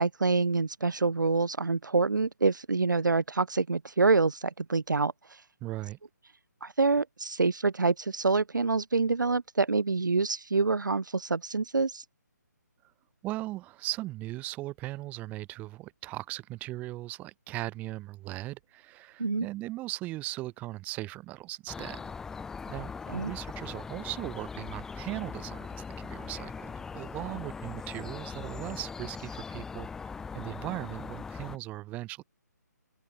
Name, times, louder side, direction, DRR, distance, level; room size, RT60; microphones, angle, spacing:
voice 1, 0.0-5.1 6.6-12.0 19.2-19.5 23.1-23.3, right 4 dB, 85° right, 1.8 m, -26 dB
voice 2, 5.6-6.0 13.2-22.1 22.7-29.9 30.3-32.2, right 17 dB, 15° right, 5.0 m, -38 dB
sound 1, 21.7-31.6, left 5 dB, 5° left, 1.8 m, -40 dB
open air
hypercardioid pair, 160°, 10 cm